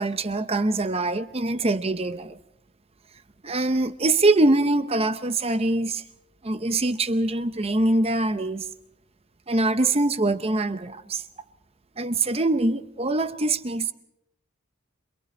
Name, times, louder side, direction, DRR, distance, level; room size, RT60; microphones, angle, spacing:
voice 1, 0.0-2.4 3.4-6.0 6.4-8.7 9.5-11.2 12.0-13.9, right 2 dB, 25° right, 0.7 m, -23 dB
27.5 x 22.0 x 4.3 m
head